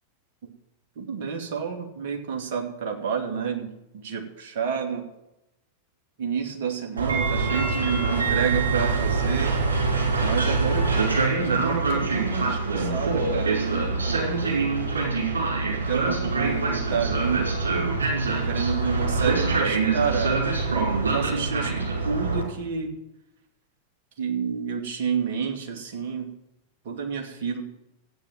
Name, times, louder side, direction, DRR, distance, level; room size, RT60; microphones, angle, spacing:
voice 1, 1.0-5.1 6.2-9.6 10.2-10.9 11.4-15.0 15.7-17.5 18.3-22.9 24.2-26.3 26.8-27.6, right 6 dB, 55° right, 2 dB, 2.7 m, -30 dB
Train, 7.0-22.4, right 3 dB, 70° right, 4.8 m, -24 dB
14.5 x 9.3 x 7.8 m, 0.89 s
figure-of-eight pair, 90°, 0 cm